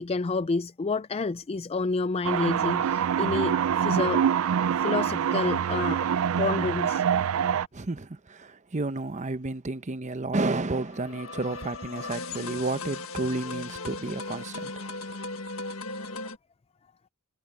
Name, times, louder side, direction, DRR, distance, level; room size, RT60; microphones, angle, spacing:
voice 1, 0.0-4.3 4.7-6.1 6.4-7.0, left 3 dB, 30° left, 0.4 m, -29 dB
sound 1, 2.2-7.7, right 8 dB, 75° right, 0.4 m, -25 dB
voice 2, 7.7-14.7, right 2 dB, 35° right, 0.9 m, -31 dB
sound 2, 10.8-16.4, left 3 dB, 75° left, 1.6 m, -37 dB
head